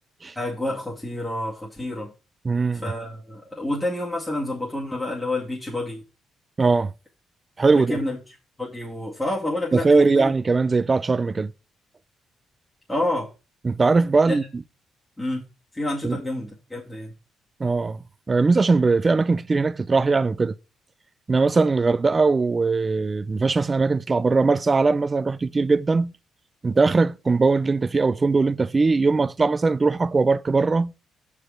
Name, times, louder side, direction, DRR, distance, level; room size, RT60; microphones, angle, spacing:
voice 1, 0.4-2.1 2.8-6.0 7.7-8.2 8.6-10.3 12.9-13.3 14.3-14.5 15.2-15.4 15.7-17.1, left 1 dB, 15° left, 2.2 m, -28 dB
voice 2, 2.4-2.9 6.6-6.9 7.6-8.0 9.7-11.5 13.6-14.6 16.0-16.2 17.6-18.0 18.3-20.5 21.3-26.1 26.6-30.9, right 4 dB, 30° right, 0.5 m, -20 dB
6.7 x 4.9 x 6.2 m
cardioid pair, 90°, 0 cm